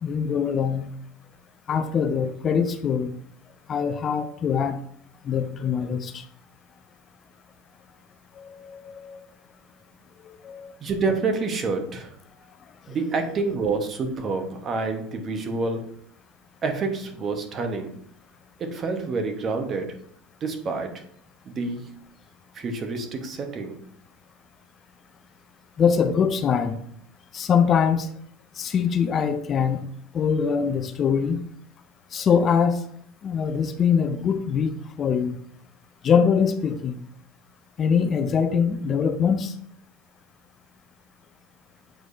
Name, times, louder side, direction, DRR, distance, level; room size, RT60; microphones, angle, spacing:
voice 1, 0.0-0.9 1.7-3.1 3.7-4.8 5.2-6.2 8.4-9.2 10.3-10.7 25.8-26.8 27.3-28.1 28.6-29.8 30.1-31.4 32.1-32.8 33.2-35.4 36.0-37.0 37.8-39.5, left 6 dB, 35° left, 8 dB, 0.5 m, -23 dB
voice 2, 10.8-12.1 12.9-15.8 16.6-17.9 18.6-20.0 20.4-21.0 21.5-21.9 22.5-23.8, right 3 dB, 35° right, 5 dB, 1.2 m, -28 dB
7.5 x 4.7 x 2.7 m, 0.63 s
hypercardioid pair, 90°, 0 cm